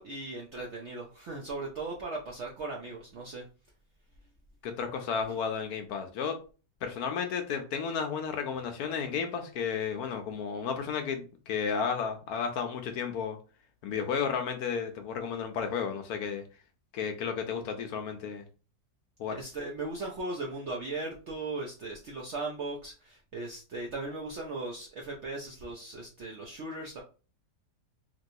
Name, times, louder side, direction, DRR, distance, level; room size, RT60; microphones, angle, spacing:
voice 1, 0.0-3.4 5.3-5.4 19.3-27.0, right 2 dB, 65° right, -1 dB, 0.7 m, -38 dB
voice 2, 4.6-6.4 6.8-13.4 13.8-16.4 16.9-18.4 19.2-19.4, left 6 dB, 70° left, 5 dB, 1.0 m, -33 dB
3.0 x 3.0 x 2.7 m, 0.35 s
omnidirectional pair, 1.8 m